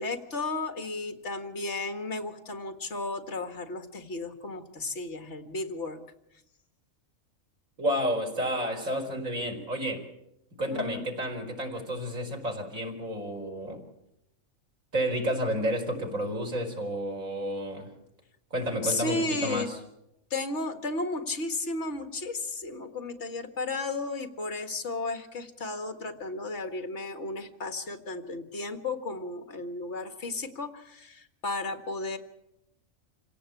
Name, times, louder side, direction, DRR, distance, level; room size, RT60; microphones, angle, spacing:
voice 1, 0.0-6.0 10.7-11.1 18.8-19.7 20.3-32.2, left 3 dB, 55° left, 7 dB, 2.2 m, -34 dB
voice 2, 7.8-10.0 10.6-13.8 14.9-17.9 18.5-19.8, equal, 85° right, 1 dB, 5.0 m, -31 dB
27.0 x 17.0 x 8.4 m, 0.84 s
omnidirectional pair, 1.4 m